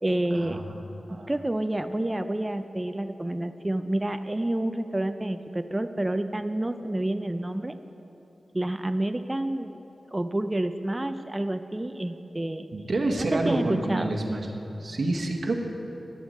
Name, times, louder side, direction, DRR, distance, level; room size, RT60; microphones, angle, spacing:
voice 1, 0.0-0.6 1.3-7.8 8.5-9.8 10.1-12.7 13.2-14.2, right 1 dB, 20° right, 9 dB, 0.4 m, -29 dB
voice 2, 12.7-14.5 14.8-15.6, right 2 dB, 60° right, 2 dB, 1.1 m, -28 dB
10.5 x 6.9 x 6.4 m, 2.9 s
cardioid pair, 60°, 0 cm